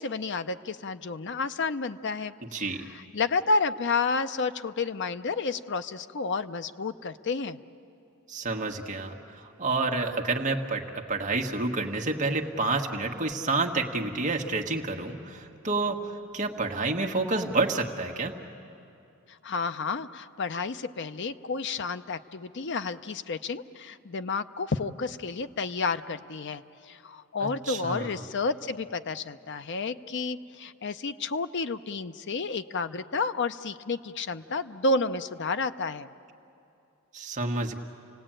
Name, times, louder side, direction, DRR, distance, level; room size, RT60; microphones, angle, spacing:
voice 1, 0.0-7.6 19.3-36.1, left 4 dB, 55° left, 11 dB, 0.7 m, -31 dB
voice 2, 2.5-2.8 8.3-18.3 27.4-28.2 37.1-37.8, right 3 dB, 35° right, 1 dB, 1.6 m, -29 dB
30.0 x 18.5 x 9.0 m, 2.7 s
head